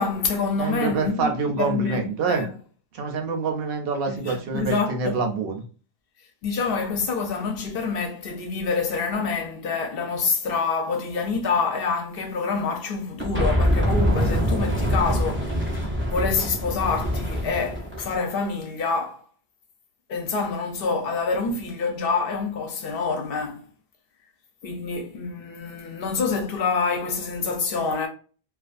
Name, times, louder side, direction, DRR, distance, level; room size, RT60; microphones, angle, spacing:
voice 1, 0.0-1.3 1.6-2.6 4.1-5.2 6.4-19.2 20.1-23.6 24.6-28.1, left 4 dB, 65° left, 0.7 m, -27 dB
voice 2, 0.6-2.4 2.9-5.6, right 4 dB, 65° right, 0.7 m, -26 dB
sound 1, 13.2-18.2, equal, 15° right, 0.4 m, -24 dB
2.4 x 2.2 x 2.4 m
omnidirectional pair, 1.1 m